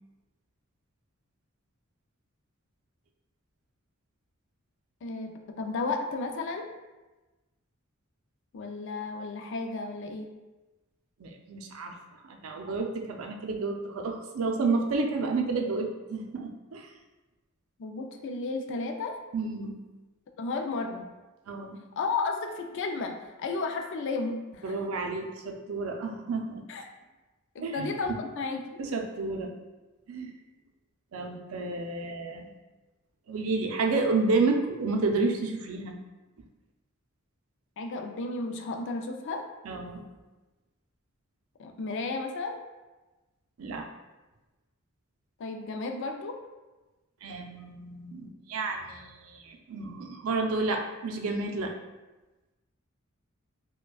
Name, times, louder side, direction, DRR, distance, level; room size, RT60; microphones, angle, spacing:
voice 1, 5.0-6.7 8.5-10.3 17.8-19.2 20.4-21.1 22.0-24.8 26.7-26.9 27.5-28.8 37.8-39.5 41.6-42.6 45.4-46.4, left 3 dB, 60° left, 5 dB, 0.4 m, -33 dB
voice 2, 11.2-12.0 12.2-16.9 19.3-19.8 21.5-21.8 24.6-26.6 27.6-27.9 28.8-29.5 30.1-30.3 31.1-32.5 33.3-35.9 39.7-40.0 43.6-43.9 47.2-51.7, right 3 dB, 85° right, 2 dB, 0.5 m, -30 dB
4.8 x 2.2 x 2.3 m, 1.1 s
head